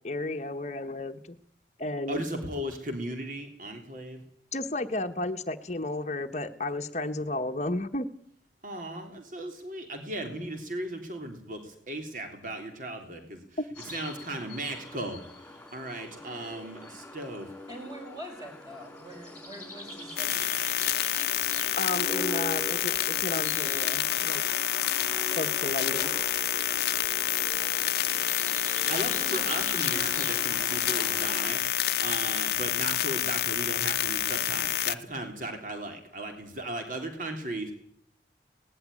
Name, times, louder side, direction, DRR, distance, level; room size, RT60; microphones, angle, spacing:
voice 1, 0.0-1.4 1.8-2.2 4.5-8.1 21.8-24.4 25.4-26.1, left 2 dB, 40° left, 7 dB, 1.1 m, -33 dB
voice 2, 2.1-4.2 8.6-13.4 13.8-17.5 28.9-31.6 32.0-37.7, right 1 dB, 45° right, 4 dB, 3.3 m, -36 dB
sound 1, 13.7-31.5, left 1 dB, 10° left, 3.7 m, -42 dB
voice 3, 17.7-20.5, equal, 20° right, 2 dB, 5.4 m, -44 dB
sound 2, 20.2-34.9, left 11 dB, 55° left, 0.8 m, -28 dB
19.0 x 14.5 x 9.9 m, 0.68 s
head